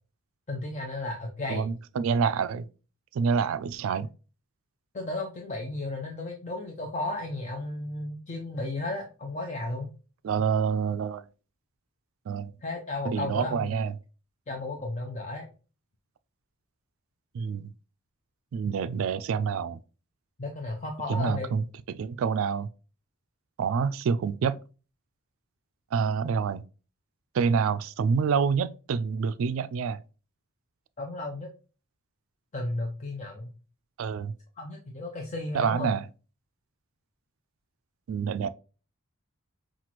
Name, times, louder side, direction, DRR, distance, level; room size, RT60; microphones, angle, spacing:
voice 1, 0.5-1.7 4.9-9.9 12.6-13.7 14.5-15.5 20.4-21.5 31.0-31.5 32.5-33.5 34.6-35.9, left 2 dB, 35° left, 0.6 m, -34 dB
voice 2, 1.5-2.7 3.1-4.1 10.2-11.2 12.3-12.5 13.0-13.9 17.3-17.7 18.5-19.8 21.1-22.7 23.6-24.6 25.9-26.6 27.3-30.0 34.0-34.3 35.5-36.0 38.1-38.5, right 6 dB, 65° right, 0.3 m, -27 dB
5.8 x 2.4 x 2.9 m
head